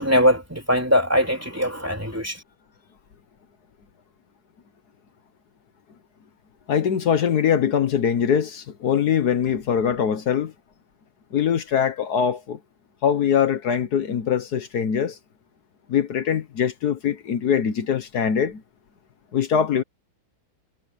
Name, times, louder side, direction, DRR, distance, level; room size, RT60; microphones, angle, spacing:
voice 1, 0.0-2.4, equal, 10° right, 3.9 m, -21 dB
voice 2, 6.7-10.5 11.3-12.6 13.0-15.2 15.9-18.6 19.3-19.8, left 8 dB, 70° left, 1.7 m, -22 dB
omnidirectional pair, 1.8 m